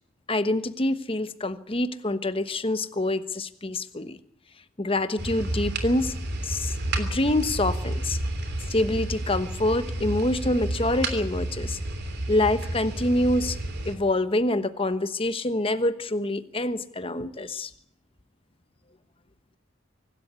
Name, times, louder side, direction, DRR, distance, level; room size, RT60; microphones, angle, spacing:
voice 1, 0.3-4.2 4.8-6.1 6.4-8.2 8.7-11.8 12.3-13.6 13.8-17.7, left 1 dB, 25° left, 12 dB, 1.2 m, -26 dB
sound 1, 5.2-14.0, right 1 dB, 50° right, 3.2 m, -31 dB
24.5 x 13.0 x 9.6 m, 0.70 s
head